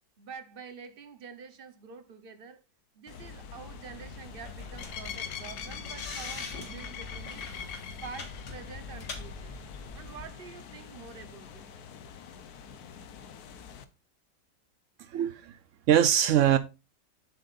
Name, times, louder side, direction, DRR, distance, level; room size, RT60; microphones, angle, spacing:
voice 1, 0.2-2.6 2.9-7.4 8.0-9.5 9.9-11.7, right 6 dB, 40° right, 1.0 m, -47 dB
sound 1, 3.1-13.8, left 7 dB, 65° left, 1.2 m, -44 dB
sound 2, 3.9-10.3, left 3 dB, 90° left, 2.4 m, -43 dB
voice 2, 15.0-15.6 15.9-16.6, right 10 dB, 80° right, 0.7 m, -23 dB
9.2 x 7.7 x 2.5 m
omnidirectional pair, 1.9 m